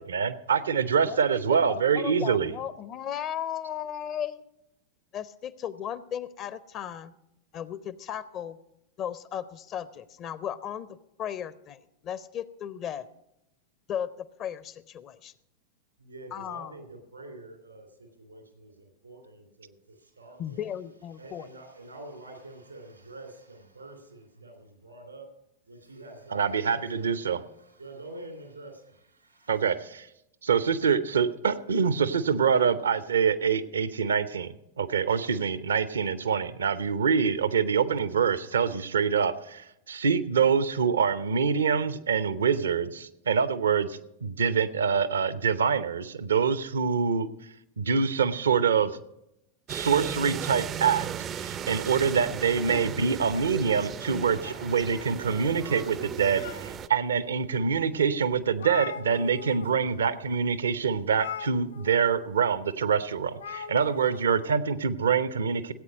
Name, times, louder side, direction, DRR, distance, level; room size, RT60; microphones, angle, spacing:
voice 1, 0.0-2.5 26.3-27.4 29.5-30.1 30.4-47.3 47.8-49.0 49.7-51.1 51.3-65.7, right 6 dB, 70° right, 15 dB, 0.7 m, -25 dB
voice 2, 1.0-4.4 5.1-7.1 7.5-8.6 9.0-13.1 13.9-15.3 16.3-16.8 20.4-21.5, left 9 dB, 35° left, 16 dB, 0.6 m, -36 dB
voice 3, 16.0-20.7 21.1-25.3 25.7-29.7, right 2 dB, 85° right, 3 dB, 2.9 m, -47 dB
sound 1, 49.7-56.9, right 9 dB, 30° right, 0.5 m, -36 dB
sound 2, 54.4-55.6 56.1-57.0 57.6-57.7 58.0-58.1 58.3-59.7 60.0-60.2 61.1-62.1 63.3-64.2, left 7 dB, 70° left, 1.2 m, -40 dB
17.5 x 8.6 x 5.2 m, 0.84 s
figure-of-eight pair, 90°, 0 cm